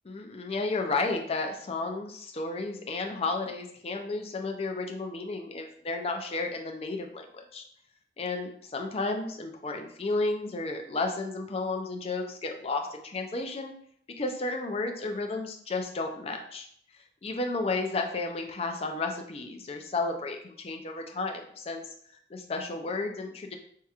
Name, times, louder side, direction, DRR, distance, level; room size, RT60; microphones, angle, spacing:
voice 1, 0.0-7.6 8.2-13.7 14.2-16.7 17.2-21.8 22.3-23.6, left 3 dB, 35° left, 3 dB, 0.4 m, -32 dB
4.6 x 2.8 x 2.4 m, 0.64 s
head